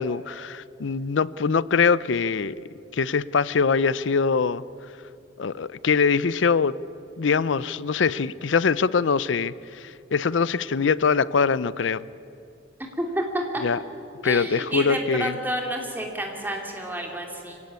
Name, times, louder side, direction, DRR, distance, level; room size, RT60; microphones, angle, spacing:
voice 1, 0.0-2.6 2.9-4.6 5.4-6.8 7.2-12.0 13.6-13.8 14.2-15.4, left 5 dB, 85° left, 19 dB, 0.6 m, -23 dB
voice 2, 13.0-13.6 14.2-17.6, right 1 dB, 10° right, 1 dB, 3.0 m, -30 dB
25.0 x 17.0 x 9.5 m, 2.8 s
head